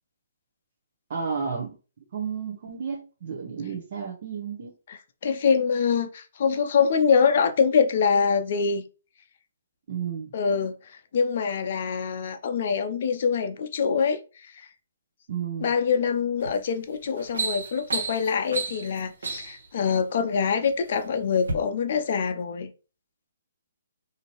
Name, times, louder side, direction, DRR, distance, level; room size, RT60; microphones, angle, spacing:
voice 1, 1.1-1.7 2.1-4.7 9.9-10.3 15.3-15.7, right 6 dB, 50° right, 0.7 m, -32 dB
voice 2, 4.9-8.8 10.3-10.8 11.1-14.7 15.6-22.7, left 6 dB, 50° left, 0.5 m, -24 dB
sound 1, 16.4-16.7 17.0-19.7 20.5-21.0 21.4-21.5, right 4 dB, 75° right, 1.1 m, -31 dB
2.8 x 2.6 x 3.0 m
hypercardioid pair, 145°, 0 cm